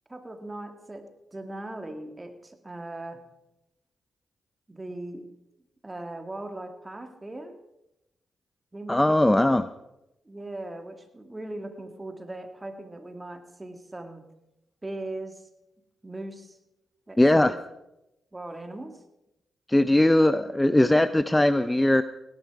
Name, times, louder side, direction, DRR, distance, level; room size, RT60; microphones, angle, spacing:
voice 1, 0.1-3.2 4.7-5.3 5.8-7.5 8.7-9.2 10.3-14.2 14.8-15.5 16.0-16.6 17.1-17.6 18.3-19.0, right 2 dB, 20° right, 6 dB, 2.1 m, -39 dB
voice 2, 8.9-9.7 17.2-17.5 19.7-22.0, left 1 dB, 15° left, 13 dB, 0.5 m, -20 dB
17.5 x 10.5 x 4.7 m, 0.90 s
cardioid pair, 60°, 0 cm